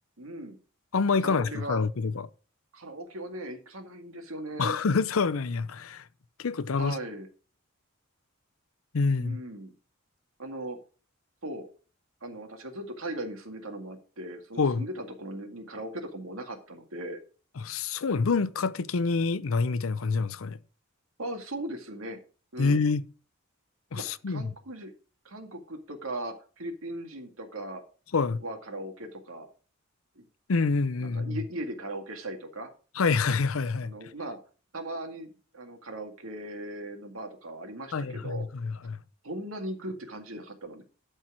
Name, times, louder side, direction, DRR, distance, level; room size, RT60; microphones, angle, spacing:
voice 1, 0.2-0.6 1.2-1.8 2.7-4.7 6.8-7.3 9.2-9.7 10.4-10.8 11.4-11.7 12.2-17.2 21.2-22.2 22.5-22.8 24.0-24.9 25.2-27.8 28.4-29.5 30.2-30.3 31.0-32.7 33.8-34.4 34.7-38.5 39.2-40.8, right 1 dB, 85° right, 2.0 m, -38 dB
voice 2, 0.9-2.3 4.6-6.0 6.4-7.0 8.9-9.4 14.6-14.8 17.6-20.6 22.6-23.0 23.9-24.4 28.1-28.4 30.5-31.4 33.0-33.9 37.9-39.0, left 4 dB, 80° left, 0.6 m, -27 dB
12.0 x 4.5 x 6.1 m
head